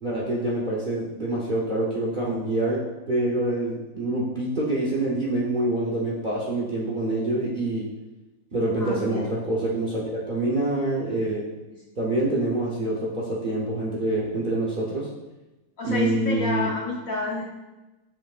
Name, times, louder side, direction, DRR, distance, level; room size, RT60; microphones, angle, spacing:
voice 1, 0.0-7.9 8.5-11.5 12.0-15.1 15.8-16.7, right 1 dB, 85° right, -5 dB, 0.4 m, -26 dB
voice 2, 8.8-9.3 15.8-17.4, left 2 dB, 70° left, -3 dB, 0.8 m, -29 dB
7.6 x 5.8 x 2.4 m, 1.1 s
omnidirectional pair, 2.3 m